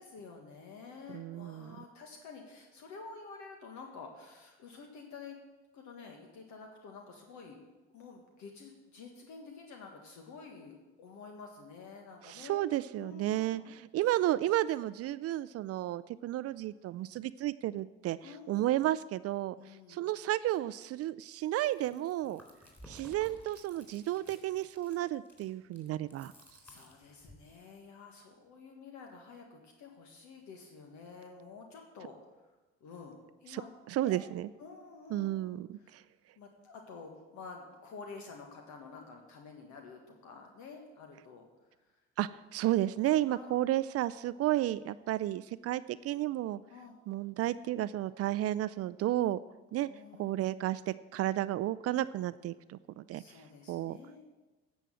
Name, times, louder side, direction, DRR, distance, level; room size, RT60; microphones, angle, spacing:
voice 1, 0.0-5.4 5.7-7.6 7.9-12.6 12.9-13.8 18.2-18.7 19.5-20.0 26.6-32.1 32.8-33.7 34.0-34.3 34.6-36.0 36.4-41.5 43.3-43.6 46.7-47.0 49.8-50.5 53.1-54.2, left 4 dB, 70° left, 2 dB, 1.6 m, -50 dB
voice 2, 1.1-1.8 12.2-22.4 22.9-26.3 33.5-33.6 33.9-34.5 35.1-36.0 42.2-46.6 47.1-49.4 49.7-49.9 50.2-53.2 53.7-54.0, right 14 dB, 50° right, 16 dB, 0.4 m, -32 dB
Chewing mastication, 21.4-27.5, equal, 5° left, 3.5 m, -56 dB
9.9 x 6.3 x 7.6 m, 1.2 s
hypercardioid pair, 65°, 30 cm